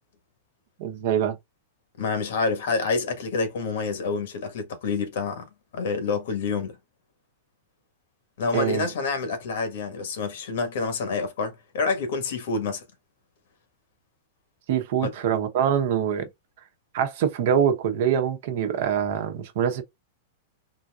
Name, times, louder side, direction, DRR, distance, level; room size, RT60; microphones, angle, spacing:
voice 1, 0.8-1.4 8.5-8.9 14.7-16.3 16.9-19.8, right 8 dB, 55° right, 0.9 m, -24 dB
voice 2, 2.0-5.4 5.7-6.8 8.4-12.8 15.0-15.1, left 4 dB, 70° left, 1.2 m, -27 dB
3.7 x 2.7 x 2.3 m
supercardioid pair, 160°, 0 cm